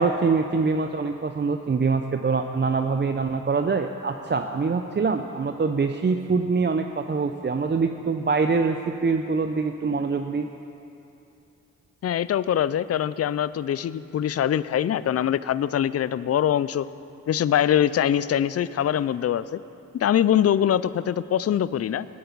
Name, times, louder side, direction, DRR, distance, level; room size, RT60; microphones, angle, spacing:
voice 1, 0.0-10.5, right 4 dB, 30° right, 6 dB, 0.6 m, -24 dB
voice 2, 12.0-16.9 17.3-19.6 19.9-22.1, left 10 dB, 45° left, 17 dB, 0.4 m, -23 dB
19.0 x 8.6 x 4.0 m, 2.8 s
supercardioid pair, 40°, 33 cm